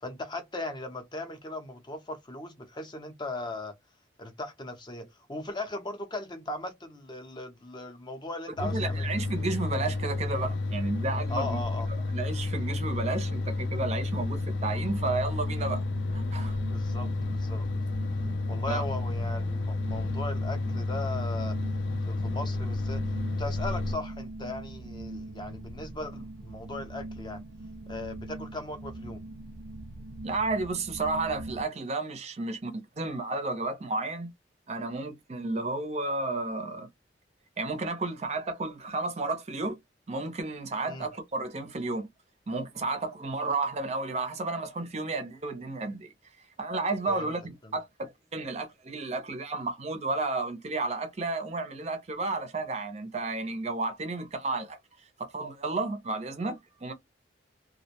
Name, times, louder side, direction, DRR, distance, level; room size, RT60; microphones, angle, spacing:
voice 1, 0.0-3.7 4.2-9.1 11.3-11.9 16.7-17.7 18.5-21.6 22.0-23.0 23.4-27.4 27.9-29.2 40.9-41.1 47.1-47.3 47.6-47.8, left 2 dB, 25° left, 0.5 m, -38 dB
sound 1, 8.6-24.0, left 2 dB, 80° left, 0.4 m, -31 dB
voice 2, 8.6-11.6 11.9-15.8 16.1-16.6 18.7-18.8 30.2-34.3 34.7-36.9 37.6-39.8 40.1-42.1 42.5-46.1 46.6-54.8 55.2-56.9, right 3 dB, 35° right, 0.5 m, -32 dB
sound 2, 13.8-31.6, right 2 dB, 85° right, 0.4 m, -42 dB
2.5 x 2.0 x 2.8 m
head